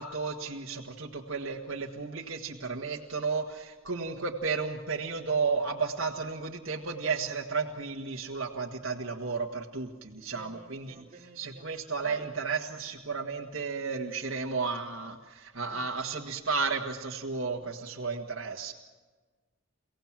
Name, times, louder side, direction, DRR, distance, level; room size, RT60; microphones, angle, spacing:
voice 1, 0.0-11.0 11.4-18.7, right 4 dB, 65° right, -1 dB, 1.8 m, -33 dB
voice 2, 10.0-11.6 12.0-12.3 15.7-15.9 17.6-17.7, right 4 dB, 35° right, 1 dB, 3.1 m, -50 dB
29.5 x 17.0 x 7.5 m, 1.4 s
head